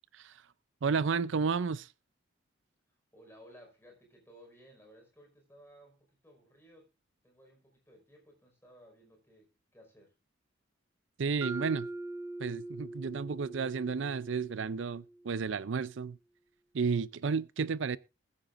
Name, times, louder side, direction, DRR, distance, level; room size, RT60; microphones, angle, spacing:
voice 1, 0.8-1.9 11.2-11.9 12.4-16.2 16.7-18.0, right 5 dB, 70° right, 0.5 m, -32 dB
voice 2, 3.1-6.9 7.2-10.1, equal, 10° left, 4.8 m, -58 dB
Mallet percussion, 11.4-15.4, right 2 dB, 15° right, 0.7 m, -43 dB
21.0 x 9.0 x 2.5 m
head